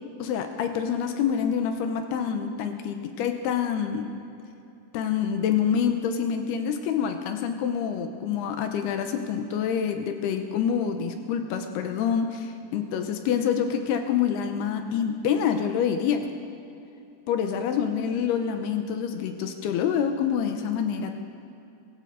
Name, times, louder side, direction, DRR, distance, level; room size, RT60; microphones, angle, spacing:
voice 1, 0.2-4.1 4.9-16.3 17.3-21.2, left 7 dB, 80° left, 6 dB, 2.5 m, -27 dB
23.0 x 14.5 x 4.0 m, 2.7 s
omnidirectional pair, 5.4 m